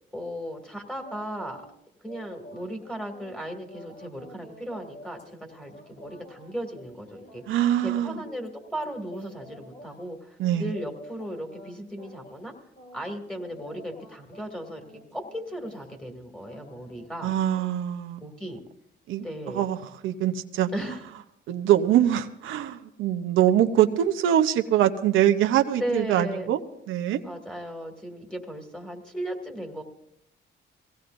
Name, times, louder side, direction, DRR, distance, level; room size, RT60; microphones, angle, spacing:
voice 1, 0.1-1.6 2.0-7.4 7.8-12.5 12.9-14.8 15.1-17.4 18.2-18.6 19.2-19.7 20.7-21.0 25.8-26.5 27.2-29.8, equal, 5° left, 4 dB, 2.4 m, -36 dB
sound 1, 1.0-1.7 2.1-10.0 10.4-11.7 12.0-12.5 12.8-16.1 16.4-17.1 17.5-17.7, equal, 60° left, 5.5 m, -49 dB
voice 2, 7.5-8.2 10.4-10.7 17.2-18.2 19.1-19.2 19.5-19.8 20.0-20.7 21.5-26.6 26.9-27.2, right 11 dB, 85° right, 6 dB, 0.8 m, -23 dB
23.0 x 17.0 x 2.6 m, 0.78 s
cardioid pair, 90°, 20 cm